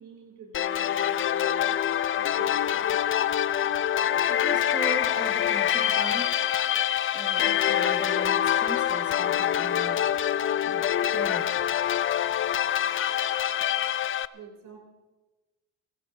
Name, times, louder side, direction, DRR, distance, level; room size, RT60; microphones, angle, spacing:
voice 1, 0.0-1.8 2.2-3.3 14.3-14.8, right 4 dB, 90° right, 1 dB, 3.7 m, -47 dB
sound 1, 0.5-14.3, left 10 dB, 45° left, 0.5 m, -25 dB
voice 2, 4.3-6.3 6.9-10.1 10.6-11.6, right 2 dB, 15° right, 2 dB, 1.4 m, -39 dB
29.5 x 14.0 x 2.8 m, 1.2 s
cardioid pair, 90°, 30 cm